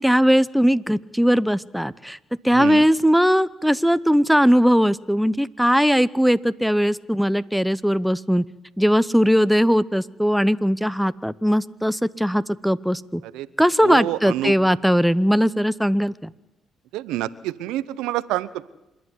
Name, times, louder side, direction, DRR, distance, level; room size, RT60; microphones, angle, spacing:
voice 1, 0.0-2.2 2.4-8.4 8.8-13.2 13.6-16.3, equal, ahead, 16 dB, 0.8 m, -19 dB
voice 2, 13.8-14.5 16.9-18.7, right 15 dB, 85° right, 16 dB, 0.8 m, -27 dB
26.5 x 11.0 x 9.7 m, 0.95 s
supercardioid pair, 60°, 0 cm